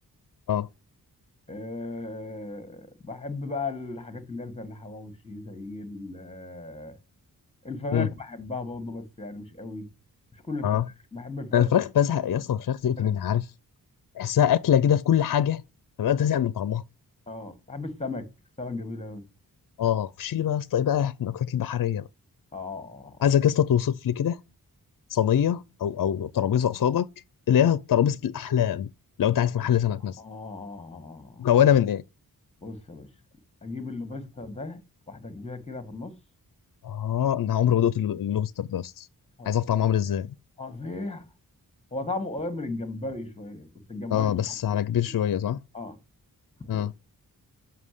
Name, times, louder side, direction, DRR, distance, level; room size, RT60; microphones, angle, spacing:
voice 1, 1.5-7.0 7.6-9.9 10.3-10.7 11.1-11.7 13.0-13.2 17.3-18.3 18.6-19.2 22.5-23.2 30.2-31.5 32.6-33.1 33.6-34.8 35.1-36.1 39.4-39.6 40.6-41.2 41.9-44.8 45.7-46.0 46.6-46.9, left 2 dB, 15° left, 1.6 m, -36 dB
voice 2, 11.5-13.5 14.2-15.6 16.0-16.8 19.8-22.1 23.2-24.4 25.1-27.1 27.5-28.9 29.2-30.2 31.4-32.0 36.8-39.1 39.4-40.3 44.1-45.6 46.7-46.9, left 9 dB, 60° left, 0.5 m, -23 dB
7.4 x 5.8 x 6.6 m
wide cardioid pair, 105°, 37 cm